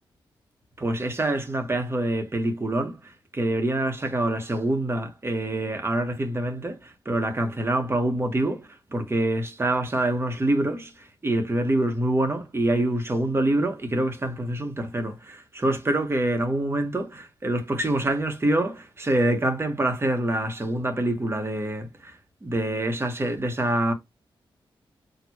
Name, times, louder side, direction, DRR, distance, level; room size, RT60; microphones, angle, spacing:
voice 1, 0.8-22.1 22.4-23.9, right 1 dB, 30° right, 1.3 m, -26 dB
4.5 x 2.6 x 2.9 m
cardioid pair, 85°, 9 cm